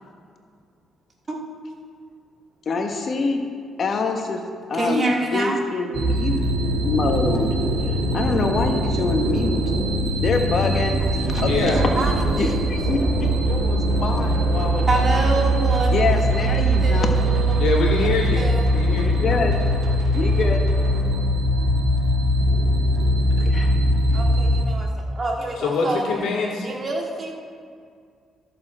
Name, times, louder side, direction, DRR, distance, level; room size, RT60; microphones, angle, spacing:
voice 1, 2.7-3.4 3.8-4.4 4.7-5.1 5.3-6.4 6.8-7.5 7.8-9.5 10.2-11.8 12.3-14.8 15.9-17.4 19.0-19.6 20.1-20.6 23.3-23.7, left 3 dB, 50° left, 4 dB, 1.1 m, -25 dB
voice 2, 4.7-5.6 11.0-12.6 14.9-16.0 16.8-17.5 18.3-18.7 24.1-26.0 26.6-27.4, right 2 dB, 35° right, 0 dB, 1.8 m, -27 dB
sound 1, 5.9-24.6, right 1 dB, 80° right, 1.3 m, -21 dB
voice 3, 11.4-11.8 17.6-18.5 18.7-19.4 24.1-24.2 25.6-26.7, left 4 dB, 85° left, -1 dB, 2.1 m, -24 dB
13.5 x 6.9 x 4.4 m, 2.2 s
cardioid pair, 90°, 0 cm